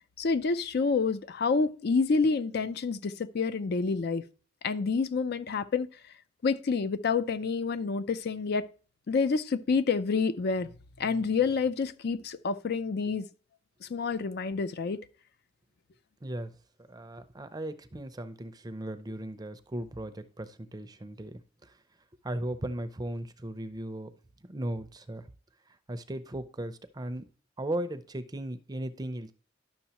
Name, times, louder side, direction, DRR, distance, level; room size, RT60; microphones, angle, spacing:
voice 1, 0.2-4.2 4.6-5.9 6.4-8.7 9.1-10.7 11.0-13.2 13.8-15.0, left 4 dB, 55° left, 0.5 m, -28 dB
voice 2, 16.9-21.3 22.2-24.1 24.5-25.2 25.9-27.2 27.6-29.3, right 1 dB, 20° right, 0.5 m, -37 dB
11.0 x 6.2 x 2.9 m
head